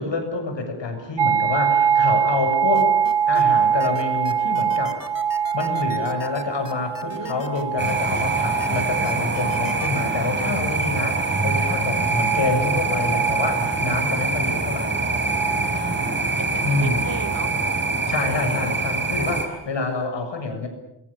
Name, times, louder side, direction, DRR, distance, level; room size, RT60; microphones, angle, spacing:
voice 1, 0.0-2.9 3.3-5.0 5.5-14.9 16.6-17.1 18.1-20.7, left 3 dB, 80° left, 6 dB, 6.7 m, -27 dB
sound 1, 1.2-14.2 14.6-16.2 16.5-18.0, right 7 dB, 70° right, 0.9 m, -25 dB
sound 2, 2.7-3.4 3.8-8.2 8.6-10.0, left 5 dB, 50° left, 2.6 m, -38 dB
voice 2, 7.1-7.5 11.8-12.4 12.7-12.9 15.6-17.5 18.4-18.9, right 3 dB, 45° right, 10 dB, 3.5 m, -37 dB
sound 3, 7.8-19.5, right 3 dB, 25° right, 4.5 m, -24 dB
28.0 x 23.0 x 7.1 m, 0.86 s
wide cardioid pair, 130°, 43 cm